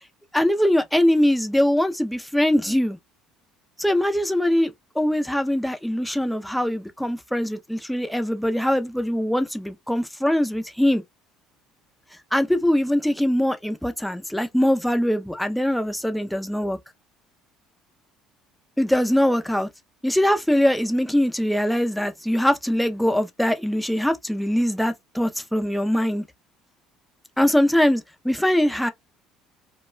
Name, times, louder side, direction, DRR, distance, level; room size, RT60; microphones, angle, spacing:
voice 1, 0.3-3.0 3.8-11.0 12.3-16.8 18.8-19.7 20.0-26.2 27.4-28.9, left 1 dB, ahead, 0.4 m, -22 dB
2.3 x 2.1 x 3.0 m
supercardioid pair, 100°, 0 cm